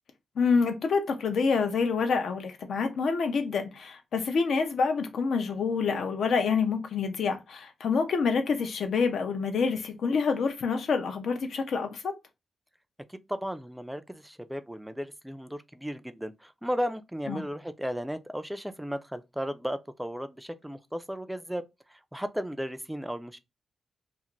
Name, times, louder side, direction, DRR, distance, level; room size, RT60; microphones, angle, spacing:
voice 1, 0.4-12.1 17.3-17.4, left 5 dB, 70° left, 0.6 m, -27 dB
voice 2, 13.1-21.6 21.9-23.4, equal, 5° right, 0.3 m, -35 dB
2.5 x 2.5 x 2.9 m
cardioid pair, 100°, 0 cm